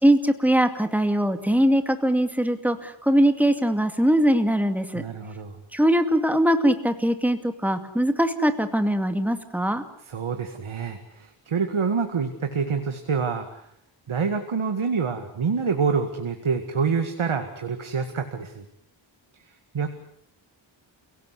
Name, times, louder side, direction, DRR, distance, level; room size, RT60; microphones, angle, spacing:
voice 1, 0.0-5.0 5.7-9.8, right 1 dB, 5° right, 8 dB, 2.3 m, -21 dB
voice 2, 4.9-5.6 10.0-13.7 14.1-18.6 19.5-19.9, right 5 dB, 85° right, 6 dB, 2.1 m, -27 dB
29.5 x 17.5 x 8.4 m, 0.71 s
wide cardioid pair, 85°, 47 cm